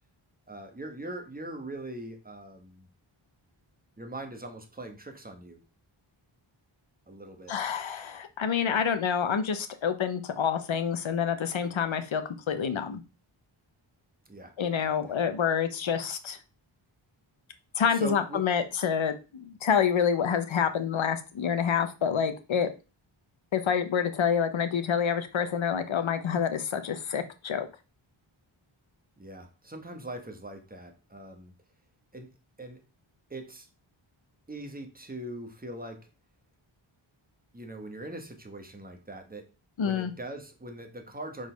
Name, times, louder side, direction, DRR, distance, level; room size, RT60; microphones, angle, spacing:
voice 1, 0.5-2.9 4.0-5.6 7.1-7.5 14.3-14.5 15.0-15.2 17.9-18.4 29.2-31.5 32.1-32.3 32.6-32.8 33.3-33.7 34.5-36.1 37.5-39.5 39.8-41.5, right 1 dB, 20° right, 4 dB, 1.3 m, -41 dB
voice 2, 7.5-13.0 14.6-16.4 17.8-22.7 23.5-27.7 39.8-40.1, left 7 dB, 65° left, 9 dB, 1.0 m, -27 dB
5.2 x 4.1 x 5.1 m, 0.31 s
wide cardioid pair, 90°, 49 cm